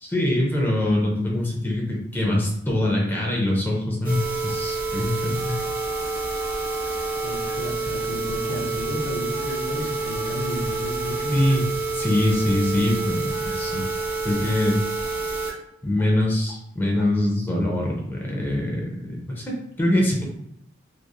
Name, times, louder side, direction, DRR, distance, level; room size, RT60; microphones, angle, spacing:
voice 1, 0.0-5.6 11.3-11.7 11.9-13.8 14.2-14.8 15.8-20.3, left 1 dB, 10° left, -3 dB, 0.5 m, -23 dB
sound 1, 4.0-15.5 16.0-16.1 16.5-16.6 17.0-17.1, right 3 dB, 10° right, 0.9 m, -28 dB
voice 2, 7.1-11.4, left 1 dB, 65° left, 1 dB, 0.5 m, -32 dB
3.1 x 2.4 x 2.2 m, 0.73 s
head